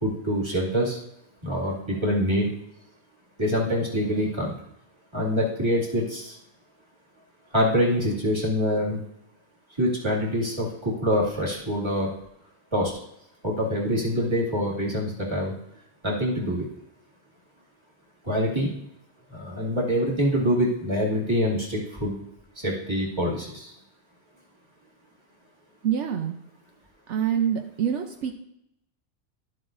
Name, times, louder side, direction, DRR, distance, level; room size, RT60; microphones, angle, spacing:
voice 1, 0.0-1.0 1.4-2.5 3.4-4.5 5.1-6.4 7.5-9.0 9.8-12.1 12.7-12.9 13.4-15.5 16.0-16.7 18.2-18.7 19.3-22.2 22.6-23.7, equal, 25° right, -5 dB, 2.3 m, -25 dB
voice 2, 25.8-26.3 27.1-28.3, right 8 dB, 75° right, 5 dB, 1.0 m, -26 dB
12.0 x 7.6 x 2.6 m, 0.79 s
omnidirectional pair, 1.2 m